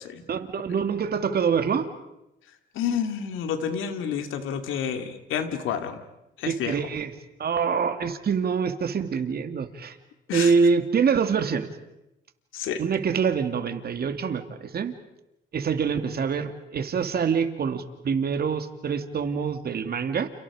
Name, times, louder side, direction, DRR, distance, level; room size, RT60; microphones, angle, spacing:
voice 1, 0.3-1.9 6.4-7.1 7.4-10.0 10.3-11.7 12.8-14.9 15.5-20.3, right 6 dB, 50° right, 8 dB, 2.5 m, -25 dB
voice 2, 2.7-6.0 6.4-6.8 10.3-10.5 12.5-12.8, left 8 dB, 85° left, 7 dB, 2.5 m, -29 dB
30.0 x 29.0 x 5.0 m, 0.90 s
cardioid pair, 90°, 20 cm